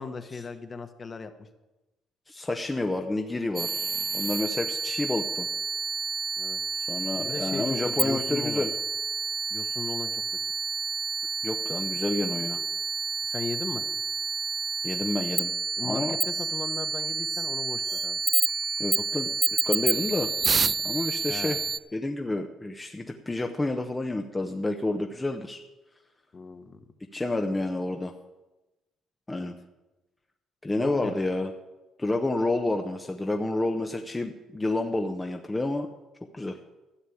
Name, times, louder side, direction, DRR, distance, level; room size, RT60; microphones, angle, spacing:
voice 1, 0.0-1.5 6.4-6.6 7.2-8.7 9.5-10.2 13.2-13.9 15.8-18.2 21.3-21.6 26.3-26.8 29.3-29.5 30.8-31.2, left 4 dB, 30° left, 9 dB, 1.2 m, -37 dB
voice 2, 2.3-3.9 4.1-5.5 6.9-8.7 11.4-12.6 14.8-15.5 15.8-16.2 18.8-19.3 19.6-20.3 20.8-21.6 21.9-25.6 27.1-28.1 29.3-29.5 30.6-31.5 32.0-35.9 36.3-36.6, left 2 dB, 15° left, 4 dB, 0.8 m, -29 dB
sound 1, 3.6-21.8, right 5 dB, 30° right, 0.3 m, -29 dB
13.0 x 7.3 x 8.5 m, 1.0 s
cardioid pair, 120°, 0 cm